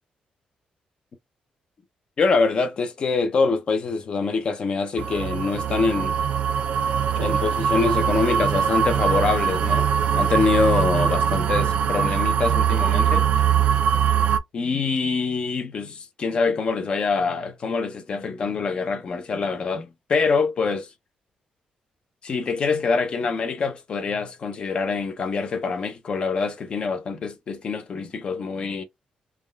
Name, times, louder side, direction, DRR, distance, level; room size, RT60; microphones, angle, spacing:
voice 1, 2.2-6.2 7.2-9.9 10.1-13.3 14.5-20.9 22.2-28.8, left 4 dB, 40° left, 0.6 m, -25 dB
sound 1, 5.0-14.4, right 8 dB, 60° right, 0.3 m, -22 dB
3.5 x 2.2 x 2.3 m
cardioid pair, 155°, 3 cm